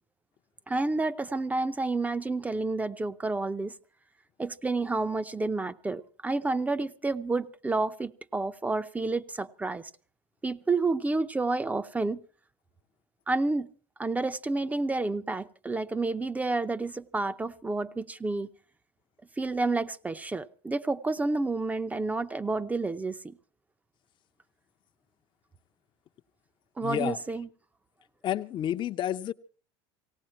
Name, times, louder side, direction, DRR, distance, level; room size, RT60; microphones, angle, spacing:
voice 1, 0.7-3.7 4.4-9.9 10.4-12.2 13.3-13.7 14.0-18.5 19.4-23.3 26.8-27.5, right 3 dB, 10° right, 0.7 m, -30 dB
voice 2, 26.8-27.2 28.2-29.3, left 11 dB, 40° left, 0.7 m, -30 dB
18.0 x 17.5 x 4.3 m
supercardioid pair, 110°, 13 cm